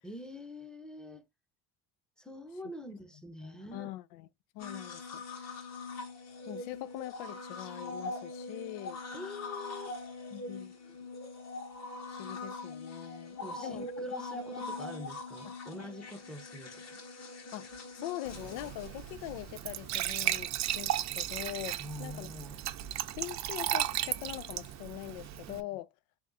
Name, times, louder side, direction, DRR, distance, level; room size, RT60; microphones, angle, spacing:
voice 1, 0.0-1.2 2.2-3.9 9.1-9.9 13.4-17.0 21.8-22.6 23.1-23.2 25.5-25.7, left 1 dB, ahead, 0.8 m, -45 dB
voice 2, 3.4-4.3 4.5-5.5 6.5-9.0 10.3-10.7 12.1-14.1 15.4-15.5 17.5-22.3 23.2-25.9, left 15 dB, 75° left, 0.5 m, -43 dB
sound 1, 4.6-19.9 21.3-21.4, left 3 dB, 40° left, 1.6 m, -42 dB
Glass / Trickle dribble / Fill (with liquid), 18.3-25.6, right 13 dB, 45° right, 0.6 m, -35 dB
3.6 x 3.5 x 2.6 m
supercardioid pair, 85°, 38 cm